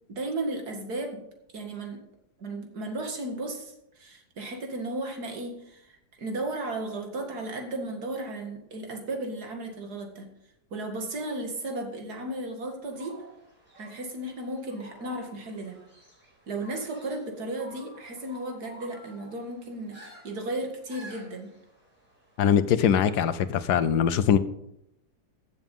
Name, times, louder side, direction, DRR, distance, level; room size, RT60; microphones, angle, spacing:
voice 1, 0.1-1.2 1.5-2.0 2.4-10.3 10.7-13.2 13.8-15.9 16.5-21.5, right 2 dB, 70° right, 4 dB, 2.4 m, -35 dB
sound 1, 12.9-22.4, right 1 dB, 25° right, 5.2 m, -52 dB
voice 2, 22.4-24.4, left 8 dB, 80° left, 13 dB, 1.3 m, -22 dB
15.0 x 7.3 x 5.4 m, 0.82 s
omnidirectional pair, 1.7 m